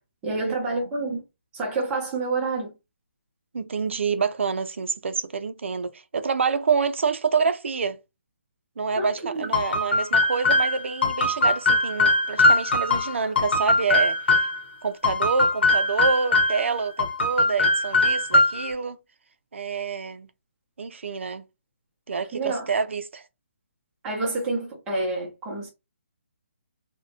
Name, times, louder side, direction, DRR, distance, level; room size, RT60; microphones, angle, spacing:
voice 1, 0.2-1.2 1.5-2.7 9.0-9.5 22.3-22.7 24.0-25.7, right 3 dB, 10° right, 0.5 m, -28 dB
voice 2, 3.5-8.0 8.8-14.5 14.8-19.0 19.5-20.3 20.8-21.4 22.1-23.2, right 5 dB, 70° right, 0.4 m, -27 dB
sound 1, 9.5-14.6 15.0-16.7 17.0-18.7, left 2 dB, 55° left, 0.9 m, -21 dB
2.5 x 2.1 x 2.6 m
hypercardioid pair, 175°, 7 cm